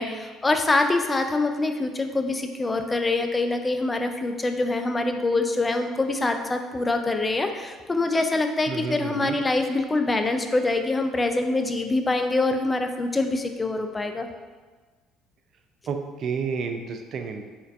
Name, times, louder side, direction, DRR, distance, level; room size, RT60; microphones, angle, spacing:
voice 1, 0.0-14.3, left 2 dB, 20° left, 6 dB, 0.3 m, -25 dB
voice 2, 8.7-9.4 15.9-17.5, right 5 dB, 55° right, 5 dB, 0.3 m, -30 dB
4.4 x 2.5 x 2.4 m, 1.4 s
supercardioid pair, 85°, 0 cm